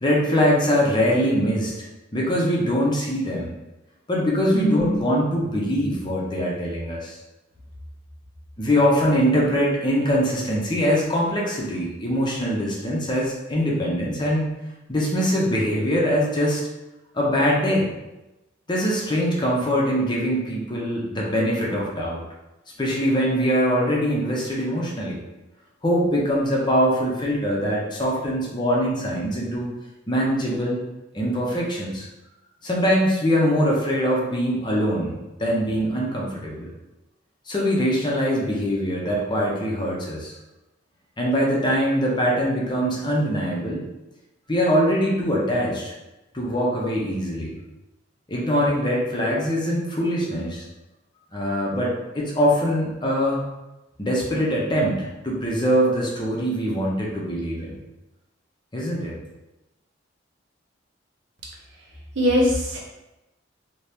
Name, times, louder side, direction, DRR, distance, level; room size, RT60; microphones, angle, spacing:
voice 1, 0.0-3.5 4.1-7.2 8.6-14.6 14.9-16.6 17.1-17.9 18.7-22.2 22.8-25.2 25.8-29.7 30.1-30.8 31.1-32.1 32.6-36.7 37.5-40.3 41.2-43.8 44.5-45.9 46.3-47.5 48.3-50.6 51.3-53.4 54.0-57.8 58.7-59.2, equal, 25° left, -4 dB, 0.7 m, -23 dB
voice 2, 4.5-5.0 62.1-62.8, equal, 75° right, -3 dB, 0.9 m, -21 dB
2.9 x 2.8 x 3.4 m, 0.99 s
head